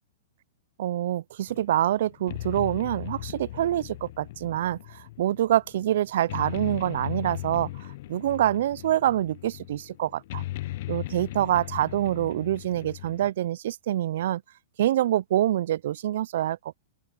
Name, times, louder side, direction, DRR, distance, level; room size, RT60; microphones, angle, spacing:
voice 1, 0.8-10.4 10.9-14.4 14.8-16.6, right 12 dB, 65° right, 0.3 m, -26 dB
sound 1, 1.5-13.3, left 16 dB, 60° left, 0.5 m, -38 dB
open air
hypercardioid pair, 135°, 0 cm